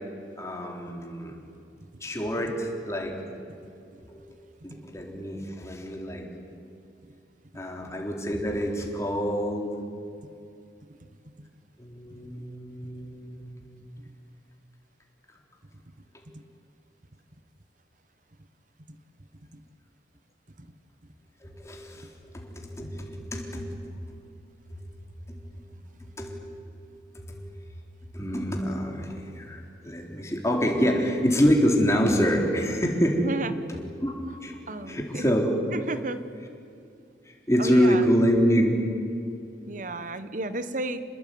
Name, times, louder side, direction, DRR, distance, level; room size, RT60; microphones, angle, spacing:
voice 1, 0.4-1.4 2.0-3.1 4.1-4.3 4.6-6.2 7.5-9.8 11.8-13.7 21.4-24.0 25.3-25.4 26.2-26.4 27.1-27.4 28.1-33.2 33.7-34.1 34.4-34.6 34.9-35.5 37.5-38.7, equal, 15° left, 1 dB, 3.8 m, -26 dB
voice 2, 34.7-35.3 35.7-36.2 37.6-38.0 39.7-41.0, right 2 dB, 45° right, 12 dB, 1.3 m, -32 dB
27.5 x 20.5 x 9.5 m, 2.5 s
head